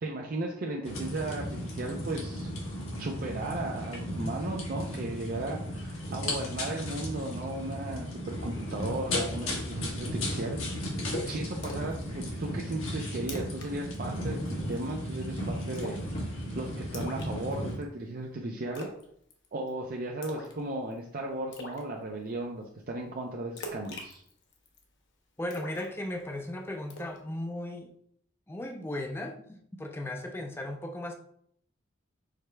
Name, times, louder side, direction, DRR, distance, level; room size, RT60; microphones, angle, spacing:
voice 1, 0.0-2.5 3.0-16.1 16.5-18.9 19.5-24.2, right 2 dB, 45° right, 0 dB, 0.4 m, -36 dB
sound 1, 0.8-17.8, equal, 90° left, 1.4 m, -35 dB
Splash splatter, 11.6-12.0 12.4-12.5 12.9-13.0 13.2-13.7 13.9-14.2 14.5-14.8 15.8-16.1 16.9-17.8 18.8-19.1 19.3-19.7 20.2-20.6 20.9-21.0 21.5-21.8 23.6-24.8 25.5-26.4 26.9-27.2, left 1 dB, 60° left, 0.9 m, -42 dB
voice 2, 25.4-27.9 28.5-31.1, left 1 dB, 10° left, 3 dB, 0.4 m, -36 dB
4.9 x 4.3 x 2.2 m, 0.67 s
head